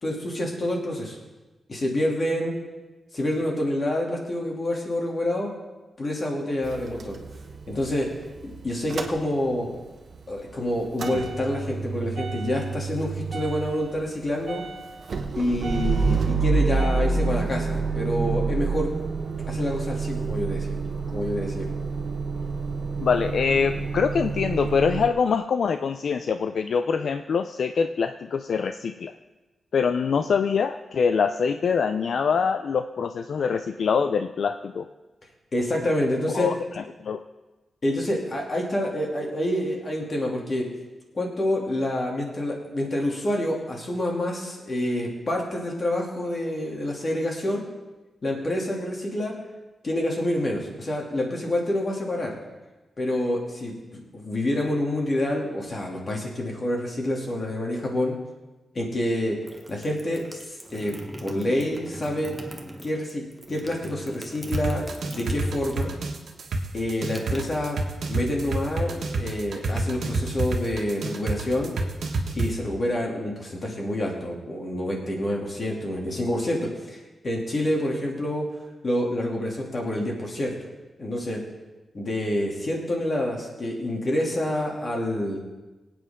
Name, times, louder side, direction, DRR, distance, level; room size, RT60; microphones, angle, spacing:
voice 1, 0.0-1.2 1.7-2.5 3.1-5.5 6.0-7.2 7.7-8.1 8.4-9.7 10.3-14.6 15.3-18.9 19.5-20.8 21.1-21.7 35.5-36.5 37.8-40.7 41.1-47.6 48.2-49.3 49.8-52.3 53.0-58.1 58.7-59.4 59.7-60.9 61.2-62.3 62.8-64.8 65.1-65.9 66.7-67.8 68.1-71.7 72.3-77.0 77.2-78.4 78.8-80.5 81.0-81.4 81.9-85.4, left 1 dB, 35° left, -1 dB, 2.7 m, -27 dB
Motor vehicle (road) / Engine starting / Idling, 6.6-9.8 10.1-25.1, right 4 dB, 55° right, 1.1 m, -28 dB
voice 2, 23.0-29.1 29.7-34.9 36.3-37.2, left 6 dB, 65° left, 9 dB, 0.4 m, -24 dB
sound 1, 59.2-66.0 66.3-68.1, right 1 dB, 5° right, 1.2 m, -41 dB
sound 2, 64.5-72.5, right 3 dB, 80° right, 1.6 m, -27 dB
23.5 x 8.7 x 3.7 m, 1.2 s
wide cardioid pair, 155°, 0 cm